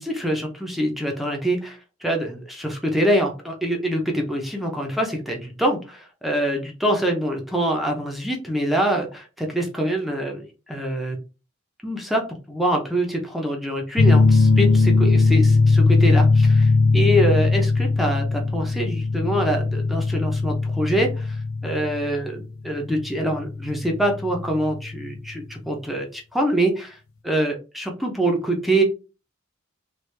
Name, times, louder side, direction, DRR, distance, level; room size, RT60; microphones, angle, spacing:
voice 1, 0.0-11.2 11.8-12.2 12.5-27.0 27.2-28.8, right 1 dB, ahead, 1 dB, 0.5 m, -25 dB
sound 1, 14.0-25.2, left 3 dB, 85° left, 0.5 m, -19 dB
3.1 x 2.3 x 3.2 m, 0.32 s
head